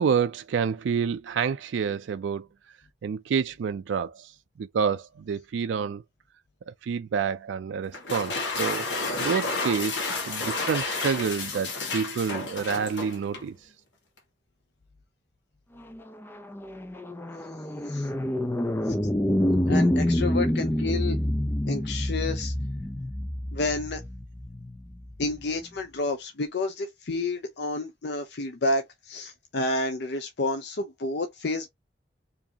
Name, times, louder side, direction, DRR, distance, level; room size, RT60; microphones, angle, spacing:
voice 1, 0.0-2.5 3.0-4.3 4.6-6.0 6.7-8.8 9.2-13.5, right 6 dB, 75° right, 0.3 m, -28 dB
sound 1, 7.9-13.5, left 3 dB, 80° left, 1.4 m, -31 dB
sound 2, 15.9-25.4, left 1 dB, 10° left, 0.5 m, -27 dB
voice 2, 19.7-21.2 21.7-22.5 23.5-24.0 25.2-31.7, left 2 dB, 60° left, 0.6 m, -30 dB
4.6 x 2.7 x 2.8 m
head